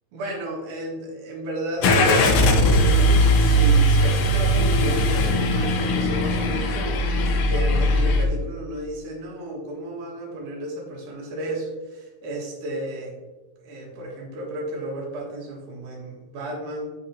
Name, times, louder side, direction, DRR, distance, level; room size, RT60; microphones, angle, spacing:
voice 1, 0.1-13.2 13.6-16.9, right 1 dB, 85° right, -1 dB, 3.1 m, -33 dB
Car / Engine starting, 1.8-8.2, equal, 70° left, 1.6 m, -19 dB
8.3 x 6.6 x 2.8 m, 1.3 s
omnidirectional pair, 3.5 m